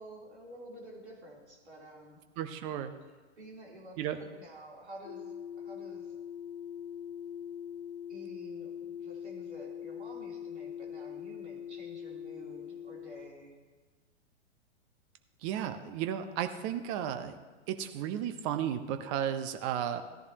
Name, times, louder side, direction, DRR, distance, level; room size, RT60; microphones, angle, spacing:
voice 1, 0.0-2.2 3.4-6.1 8.1-13.6, right 1 dB, 70° right, -3 dB, 3.6 m, -50 dB
voice 2, 2.4-2.9 4.0-4.2 15.4-17.4 17.7-20.0, right 10 dB, 30° right, 8 dB, 0.8 m, -34 dB
sound 1, 5.0-13.3, left 8 dB, 50° left, 1.1 m, -42 dB
16.0 x 10.5 x 3.0 m, 1.3 s
figure-of-eight pair, 105°, 35 cm